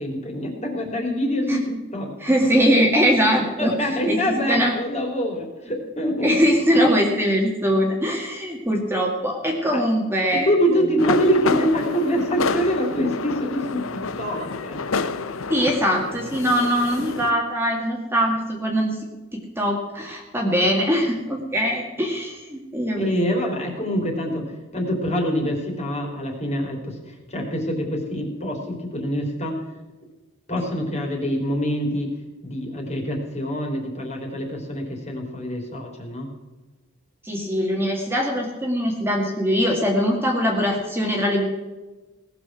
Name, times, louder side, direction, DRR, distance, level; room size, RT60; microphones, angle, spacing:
voice 1, 0.0-2.3 3.6-6.4 9.7-9.8 10.3-14.8 23.0-29.6 30.5-32.1 32.4-36.3, equal, 35° left, 1 dB, 3.5 m, -25 dB
voice 2, 2.2-3.7 4.1-4.7 6.2-10.5 15.5-19.0 19.3-23.5 37.2-41.4, equal, 10° right, 0 dB, 2.0 m, -22 dB
sound 1, 11.0-17.3, left 4 dB, 80° left, 0.8 m, -28 dB
18.5 x 7.1 x 6.1 m, 1.2 s
head